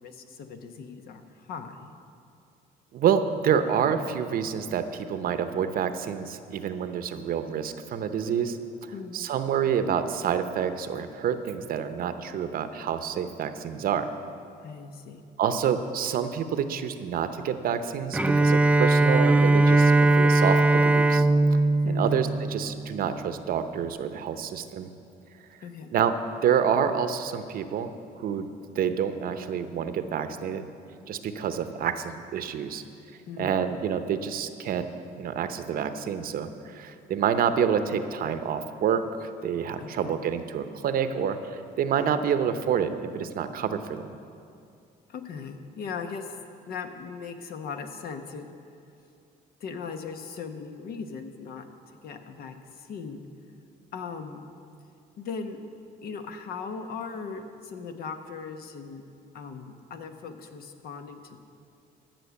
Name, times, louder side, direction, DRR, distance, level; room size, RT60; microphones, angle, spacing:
voice 1, 0.0-1.9 8.9-9.3 14.6-15.2 21.8-22.2 25.6-25.9 33.3-33.6 39.8-40.2 45.1-46.4 46.7-48.5 49.6-51.7 52.0-53.2 53.9-54.4 55.2-55.6 56.0-59.0 59.3-61.4, left 5 dB, 65° left, 7 dB, 1.0 m, -38 dB
voice 2, 2.9-8.6 8.8-14.1 15.4-21.3 21.9-24.9 25.9-26.1 26.4-27.9 28.2-28.5 28.7-30.7 31.1-32.8 33.4-34.9 35.2-44.2, right 8 dB, 60° right, 10 dB, 0.8 m, -28 dB
Bowed string instrument, 18.1-23.1, right 2 dB, 10° right, 0.3 m, -20 dB
13.0 x 6.2 x 8.2 m, 2.5 s
cardioid pair, 110°, 17 cm